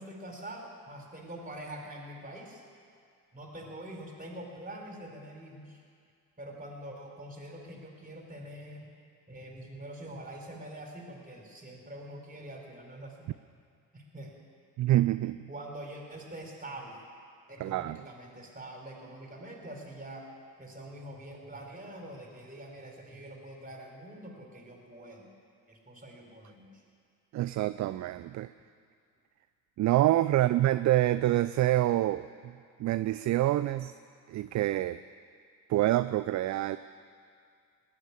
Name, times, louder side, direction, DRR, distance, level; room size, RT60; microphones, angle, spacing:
voice 1, 0.0-2.6 3.3-5.8 6.4-8.9 9.3-13.3 13.9-14.3 15.5-17.0 17.5-20.3 20.6-25.3 25.7-26.8 30.3-30.5, right 1 dB, 15° right, 1 dB, 4.6 m, -45 dB
voice 2, 14.8-15.4 17.6-18.0 27.3-28.5 29.8-32.5 32.8-33.9 34.3-35.0 35.7-36.8, right 15 dB, 40° right, 13 dB, 0.5 m, -26 dB
19.0 x 8.7 x 8.6 m, 2.3 s
hypercardioid pair, 50°, 49 cm